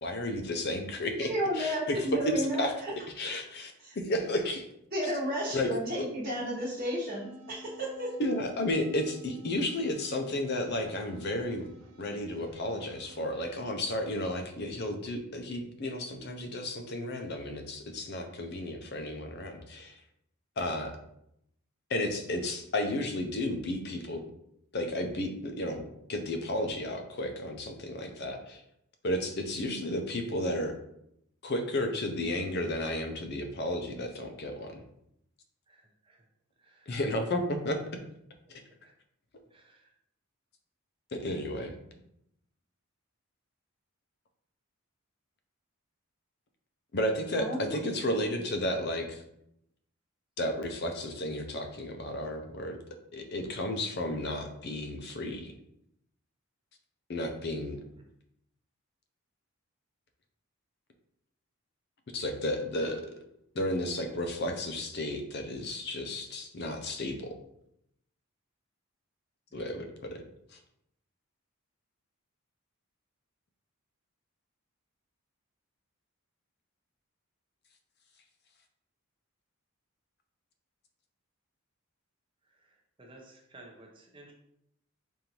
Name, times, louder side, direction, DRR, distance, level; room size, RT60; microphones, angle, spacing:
voice 1, 0.0-1.3 1.5-2.0 2.6-2.7 3.2-3.7 4.0-4.6 5.5-5.7 5.9-6.0 8.2-11.7 12.0-19.9 20.6-21.0 21.9-24.2 24.7-25.8 26.1-28.6 29.0-30.7 31.4-34.8 36.9-37.8 38.5-38.6 41.1-42.0 46.9-49.2 50.4-52.8 53.1-55.5 57.1-57.8 62.1-63.1 63.5-67.3 69.5-70.2 70.5-70.6, left 1 dB, 45° left, 5 dB, 0.5 m, -33 dB
voice 2, 1.3-2.9 3.8-4.0 4.9-8.1 47.3-47.8, equal, 40° right, -11 dB, 1.1 m, -32 dB
sound 1, 7.1-13.6, equal, 85° right, 0.8 m, -52 dB
voice 3, 35.7-36.2 36.6-36.9 38.8-38.9 39.5-39.9 69.5-69.7 82.5-84.3, right 2 dB, 25° right, 0 dB, 0.7 m, -55 dB
5.2 x 2.6 x 2.9 m, 0.77 s
head